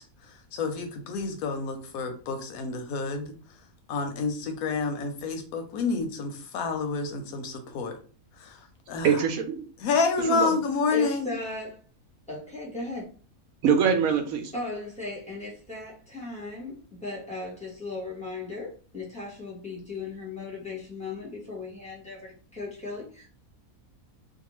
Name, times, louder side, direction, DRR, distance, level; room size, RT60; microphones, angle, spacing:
voice 1, 0.5-3.3 3.9-8.0 8.4-8.6 8.9-9.2 9.8-11.3, left 4 dB, 90° left, 1.1 m, -28 dB
voice 2, 9.0-9.6 10.3-10.5 13.6-14.5, right 7 dB, 75° right, 1.0 m, -23 dB
voice 3, 10.9-11.8 12.3-13.0 14.5-23.4, left 3 dB, 5° left, 0.9 m, -37 dB
2.7 x 2.3 x 3.0 m
omnidirectional pair, 1.5 m